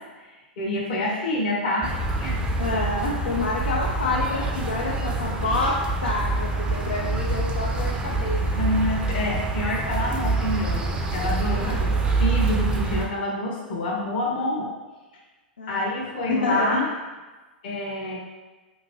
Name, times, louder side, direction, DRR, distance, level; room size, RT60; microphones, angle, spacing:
voice 1, 0.6-2.4 2.7-2.8 3.3-3.4 8.5-11.9 12.2-14.7 15.7-16.9 17.6-18.2, left 1 dB, 65° left, -2 dB, 0.8 m, -27 dB
sound 1, 1.8-13.1, right 3 dB, 20° right, 0.4 m, -26 dB
voice 2, 2.6-8.4 11.6-12.0 15.6-16.9, left 3 dB, 90° left, -3 dB, 0.4 m, -28 dB
2.9 x 2.5 x 2.9 m, 1.2 s
hypercardioid pair, 105°, 5 cm